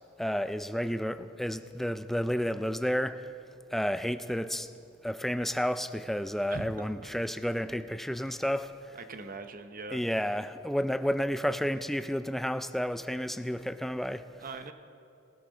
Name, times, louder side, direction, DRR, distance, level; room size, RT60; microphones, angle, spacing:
voice 1, 0.2-3.3 3.7-4.7 5.0-8.7 9.9-14.3, equal, ahead, 0.3 m, -31 dB
voice 2, 6.5-7.1 8.3-8.4 9.1-10.0 14.4-14.7, right 3 dB, 45° right, 0.8 m, -41 dB
19.0 x 13.0 x 3.8 m
head